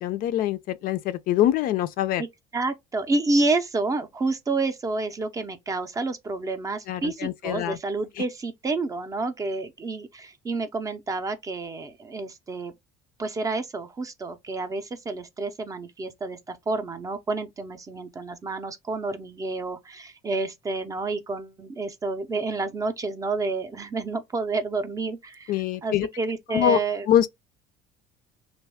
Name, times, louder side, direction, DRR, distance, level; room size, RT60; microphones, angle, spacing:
voice 1, 0.0-2.2 6.9-7.8 25.5-26.1 26.5-26.8 27.1-27.3, left 11 dB, 55° left, 0.4 m, -24 dB
voice 2, 2.5-12.7 13.2-27.1, right 3 dB, 20° right, 0.5 m, -29 dB
3.0 x 2.2 x 3.4 m
cardioid pair, 145°, 18 cm